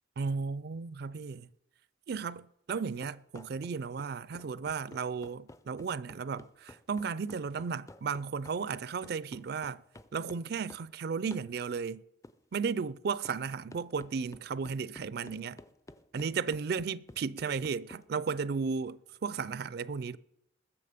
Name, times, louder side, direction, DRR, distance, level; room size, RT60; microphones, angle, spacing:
voice 1, 0.2-1.5 2.1-9.8 10.1-12.0 12.5-15.6 16.1-20.2, right 5 dB, 60° right, 0.4 m, -34 dB
sound 1, 2.7-10.9 11.3-11.5 12.2-12.4 13.2-13.4 13.7-18.0, left 2 dB, 15° left, 0.5 m, -52 dB
21.0 x 7.2 x 5.0 m
head